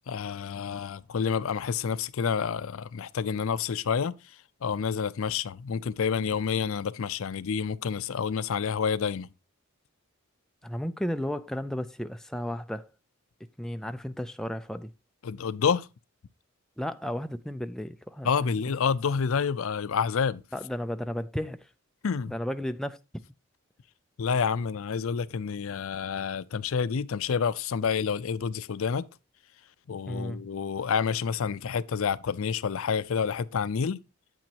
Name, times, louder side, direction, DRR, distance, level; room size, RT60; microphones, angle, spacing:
voice 1, 0.1-4.1 4.6-9.3 15.2-15.9 18.2-20.4 22.0-22.3 24.2-29.1 29.9-34.0, left 6 dB, 70° left, 0.5 m, -28 dB
voice 2, 10.6-12.9 13.6-14.9 16.8-18.7 20.5-21.7 22.3-23.2 30.1-30.4, equal, ahead, 0.3 m, -34 dB
9.0 x 8.5 x 2.8 m
head